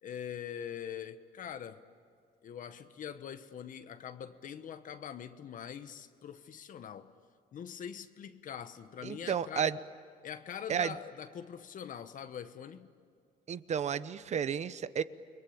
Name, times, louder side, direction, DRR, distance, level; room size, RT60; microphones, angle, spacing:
voice 1, 0.0-1.8 2.4-7.1 7.5-9.8 10.2-12.9, left 8 dB, 50° left, 1.2 m, -43 dB
voice 2, 9.0-9.8 10.7-10.9 13.5-15.0, right 8 dB, 40° right, 0.9 m, -32 dB
29.5 x 22.0 x 8.9 m
cardioid pair, 110°, 17 cm